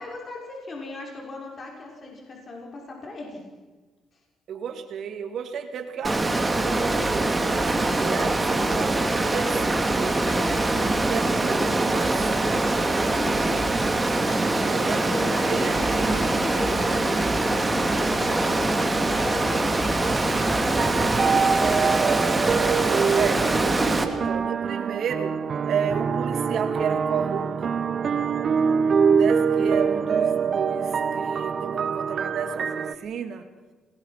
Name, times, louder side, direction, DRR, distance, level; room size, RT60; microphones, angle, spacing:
voice 1, 0.0-3.4 13.1-13.9 14.7-21.7, left 2 dB, 45° left, -1 dB, 5.7 m, -38 dB
voice 2, 4.5-9.7 9.9-10.3 11.0-12.5 14.6-16.3 23.1-23.5 24.0-25.4 25.7-27.8 29.1-33.5, right 7 dB, 65° right, 7 dB, 2.6 m, -33 dB
Water, 6.0-24.0, right 2 dB, 20° right, 2.8 m, -23 dB
sound 1, 20.3-32.9, right 6 dB, 50° right, 1.0 m, -24 dB
27.5 x 19.5 x 5.9 m, 1.3 s
cardioid pair, 90°, 0 cm